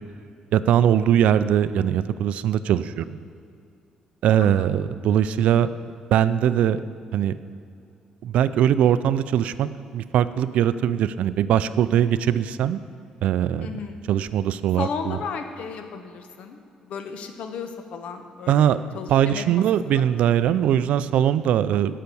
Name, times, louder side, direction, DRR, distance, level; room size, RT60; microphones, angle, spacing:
voice 1, 0.5-3.2 4.2-6.8 7.1-7.4 8.2-12.8 13.2-13.7 14.1-15.2 18.5-18.8 19.1-22.0, right 10 dB, 70° right, 14 dB, 0.4 m, -21 dB
voice 2, 4.4-4.7 13.6-14.1 14.8-19.6 19.9-20.0, left 6 dB, 65° left, 7 dB, 1.1 m, -34 dB
16.0 x 5.8 x 7.0 m, 2.6 s
cardioid pair, 145°, 2 cm